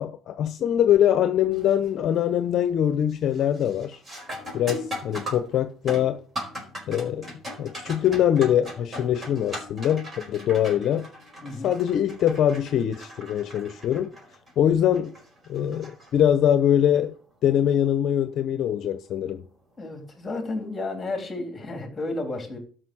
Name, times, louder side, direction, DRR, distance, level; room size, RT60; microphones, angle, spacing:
voice 1, 0.0-4.0 4.5-6.2 6.9-7.3 7.6-11.1 11.6-14.1 14.6-15.1 15.5-17.1 17.4-19.4, left 10 dB, 50° left, 0.8 m, -23 dB
sound 1, 1.5-1.9 2.3-2.7 3.1-16.6 19.1-19.2 20.0-20.3, equal, 25° right, 4.6 m, -39 dB
voice 2, 19.8-22.6, left 2 dB, 15° left, 3.6 m, -32 dB
12.5 x 6.3 x 6.3 m
cardioid pair, 145°, 0 cm